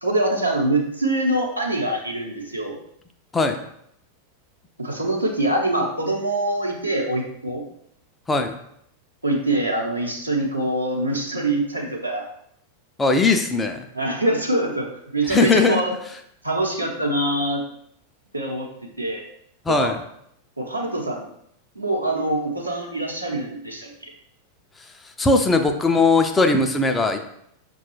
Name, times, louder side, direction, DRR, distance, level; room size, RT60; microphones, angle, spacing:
voice 1, 0.0-2.7 4.8-7.6 9.2-12.3 13.9-15.9 16.4-17.6 18.3-18.7 19.0-19.2 19.8-19.9 20.6-21.3 21.7-23.9, right 1 dB, 85° right, -1 dB, 0.8 m, -24 dB
voice 2, 13.0-13.9 15.3-15.8 19.7-20.0 25.2-27.2, left 3 dB, 15° left, 5 dB, 0.4 m, -19 dB
5.8 x 2.3 x 3.0 m, 0.72 s
figure-of-eight pair, 90°, 0 cm